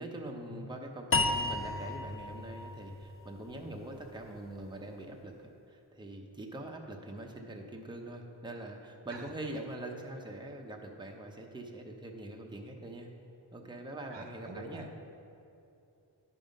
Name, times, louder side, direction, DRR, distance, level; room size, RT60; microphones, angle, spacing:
voice 1, 0.0-5.4 5.7-13.1 13.5-14.9, right 1 dB, 10° right, 1 dB, 0.8 m, -43 dB
sound 1, 1.1-4.3, left 3 dB, 30° left, 0.6 m, -33 dB
voice 2, 14.1-14.9, right 2 dB, 80° right, 3 dB, 1.1 m, -45 dB
9.9 x 5.6 x 5.2 m, 2.6 s
wide cardioid pair, 85°, 43 cm